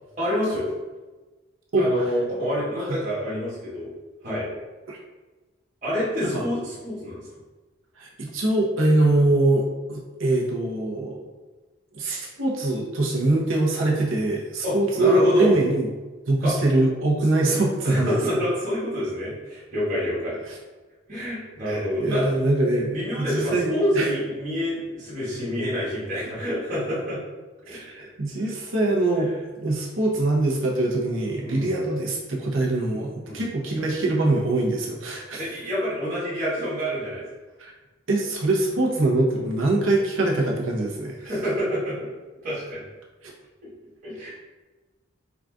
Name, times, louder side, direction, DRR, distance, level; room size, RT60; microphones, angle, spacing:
voice 1, 0.2-0.7 1.7-3.9 4.2-4.5 5.8-7.2 14.6-15.5 16.4-16.5 17.8-20.4 21.1-22.2 22.9-27.2 27.6-27.8 28.4-28.5 29.1-29.2 31.4-31.9 33.2-33.5 35.4-37.2 41.3-42.0 42.4-42.8 44.0-44.3, equal, 40° right, -9 dB, 1.3 m, -27 dB
voice 2, 8.0-11.2 11.9-15.9 16.3-18.1 20.5-20.6 21.6-24.1 27.7-35.4 37.6-37.7 38.1-41.2 43.2-43.3, right 2 dB, 85° right, -1 dB, 0.8 m, -23 dB
3.9 x 2.4 x 3.7 m, 1.2 s
head